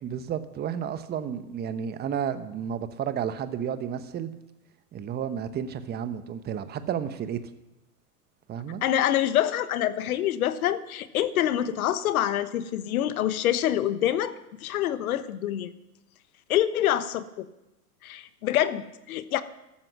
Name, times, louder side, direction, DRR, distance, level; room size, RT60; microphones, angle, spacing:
voice 1, 0.0-4.3 4.9-7.4 8.5-8.8, right 8 dB, 20° right, 11 dB, 1.0 m, -32 dB
voice 2, 8.8-15.7 16.5-17.5 18.0-19.4, left 12 dB, 65° left, 13 dB, 1.2 m, -26 dB
14.0 x 13.0 x 6.2 m, 0.93 s
hypercardioid pair, 110°, 47 cm